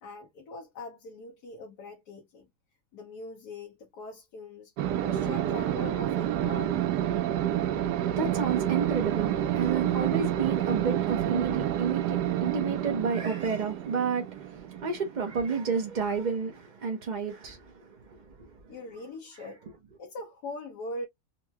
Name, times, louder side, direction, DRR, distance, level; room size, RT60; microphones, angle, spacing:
voice 1, 0.0-2.5 2.9-4.7 5.0-6.8 18.7-19.6 20.0-21.1, left 2 dB, 85° left, 1.5 m, -41 dB
sound 1, 4.8-15.8, right 11 dB, 90° right, 1.2 m, -29 dB
voice 2, 8.0-18.5, right 5 dB, 45° right, 0.6 m, -31 dB
4.2 x 2.2 x 2.7 m
omnidirectional pair, 1.7 m